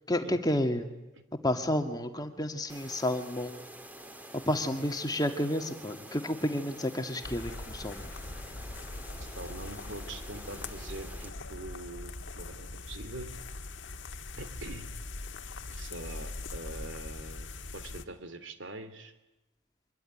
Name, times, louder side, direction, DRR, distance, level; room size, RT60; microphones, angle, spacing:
voice 1, 0.1-0.9 1.4-3.6 4.3-8.1, left 1 dB, 20° left, 6 dB, 1.9 m, -31 dB
sound 1, 2.7-11.3, right 1 dB, 10° right, 2.5 m, -48 dB
sound 2, 7.2-18.1, left 2 dB, 60° left, 1.6 m, -41 dB
voice 2, 9.3-13.3 14.3-14.9 15.7-19.1, right 2 dB, 65° right, 10 dB, 3.2 m, -44 dB
25.0 x 22.5 x 10.0 m, 1.0 s
head